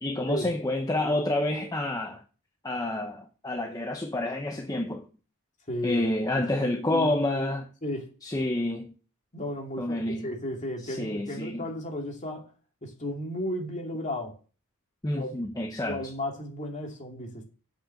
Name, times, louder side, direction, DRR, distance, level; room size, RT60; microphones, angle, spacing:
voice 1, 0.0-2.2 2.6-5.0 5.8-7.7 8.2-8.9 9.8-10.3 10.8-11.7 15.0-16.0, left 1 dB, 15° left, 0.9 m, -29 dB
voice 2, 5.7-6.0 6.5-7.5 7.8-8.1 9.3-12.5 12.8-14.3 15.2-15.3 15.9-17.4, left 1 dB, 35° left, 2.4 m, -34 dB
8.0 x 6.0 x 7.1 m
head